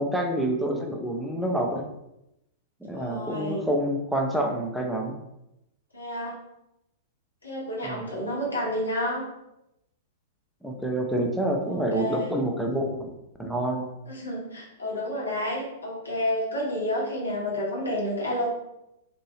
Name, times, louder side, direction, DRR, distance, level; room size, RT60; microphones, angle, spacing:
voice 1, 0.0-1.8 2.8-5.2 7.8-8.0 10.6-13.1 13.4-13.9, right 1 dB, ahead, 1 dB, 0.5 m, -27 dB
voice 2, 2.9-3.6 5.9-6.3 7.4-9.2 11.7-12.4 14.1-18.5, left 1 dB, 80° left, -5 dB, 1.0 m, -30 dB
3.0 x 2.6 x 2.7 m, 0.86 s
figure-of-eight pair, 100°, 0 cm